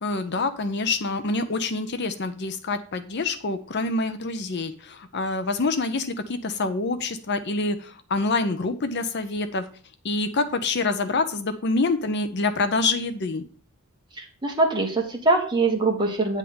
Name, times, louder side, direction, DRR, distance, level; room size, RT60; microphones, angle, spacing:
voice 1, 0.0-9.7 10.0-13.4, left 3 dB, 55° left, 10 dB, 0.7 m, -26 dB
voice 2, 14.2-16.4, right 3 dB, 20° right, 0 dB, 1.6 m, -23 dB
9.0 x 3.6 x 6.9 m, 0.43 s
head